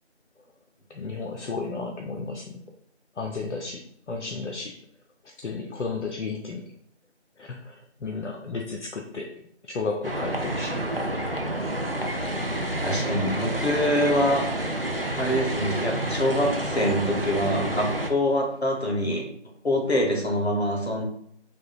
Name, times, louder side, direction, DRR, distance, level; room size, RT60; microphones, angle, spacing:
voice 1, 0.9-2.6 3.2-3.8 4.1-4.7 5.4-6.6 7.4-7.7 8.0-9.3 9.7-10.8, left 4 dB, 80° left, 2 dB, 0.5 m, -33 dB
sound 1, 10.0-18.1, right 1 dB, 55° right, 0.4 m, -29 dB
voice 2, 12.8-14.4 15.2-19.3 19.6-21.0, equal, 60° left, 1 dB, 1.0 m, -25 dB
3.4 x 3.0 x 2.3 m, 0.68 s
figure-of-eight pair, 175°, 35 cm